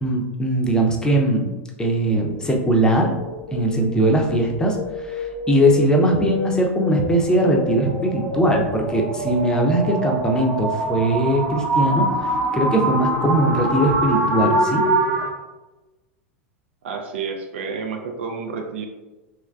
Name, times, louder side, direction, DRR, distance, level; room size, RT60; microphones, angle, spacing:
voice 1, 0.0-1.5 1.8-3.1 3.5-4.8 5.0-12.1 12.5-14.8, right 1 dB, 10° left, 1 dB, 0.6 m, -20 dB
sound 1, 2.1-15.3, right 1 dB, 35° right, 0.8 m, -25 dB
voice 2, 16.8-18.9, right 5 dB, 60° right, 4 dB, 0.4 m, -30 dB
3.1 x 3.1 x 2.3 m, 1.1 s
figure-of-eight pair, 85°, 7 cm